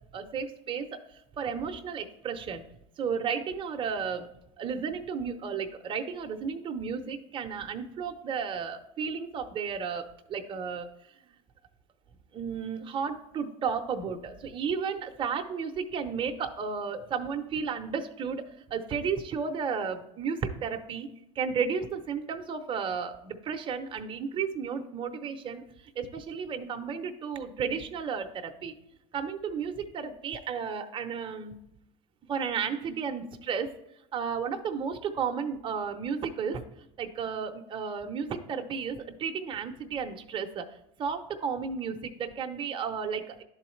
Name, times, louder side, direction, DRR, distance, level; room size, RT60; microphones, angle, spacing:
voice 1, 0.1-2.6 3.0-4.3 4.6-10.9 12.3-18.4 18.7-21.1 21.4-28.7 29.1-31.6 32.3-33.7 34.1-36.6 37.0-40.7 41.0-43.4, right 6 dB, 30° right, 5 dB, 0.7 m, -33 dB
11.0 x 3.9 x 3.2 m, 0.83 s
supercardioid pair, 100°, 16 cm